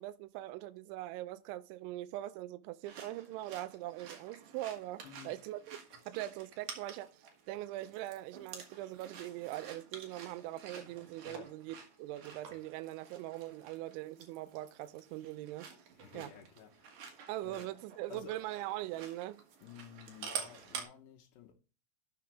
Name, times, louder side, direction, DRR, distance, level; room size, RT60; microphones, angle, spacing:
voice 1, 0.0-5.8 6.1-7.1 7.5-15.7 16.1-16.3 17.3-19.4, right 15 dB, 85° right, 2.7 m, -42 dB
sound 1, 2.8-20.8, right 6 dB, 65° right, 2.1 m, -50 dB
voice 2, 5.0-5.4 5.9-6.0 11.2-11.5 15.9-17.7 18.1-18.5 19.6-21.5, left 9 dB, 75° left, 2.6 m, -53 dB
12.0 x 6.9 x 3.3 m
omnidirectional pair, 5.9 m